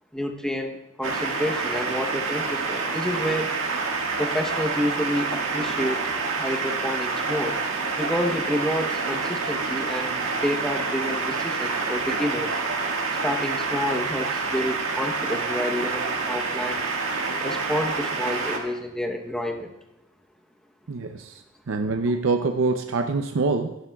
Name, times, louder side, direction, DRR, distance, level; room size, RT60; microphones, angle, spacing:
voice 1, 0.1-3.6 4.2-6.1 6.4-7.6 8.0-12.6 13.2-16.8 17.4-19.7, equal, 5° left, 2 dB, 0.9 m, -29 dB
sound 1, 1.0-18.6, right 4 dB, 90° right, 1.7 m, -27 dB
voice 2, 20.9-23.8, right 3 dB, 70° right, 5 dB, 0.6 m, -25 dB
16.0 x 11.5 x 2.3 m, 0.90 s
head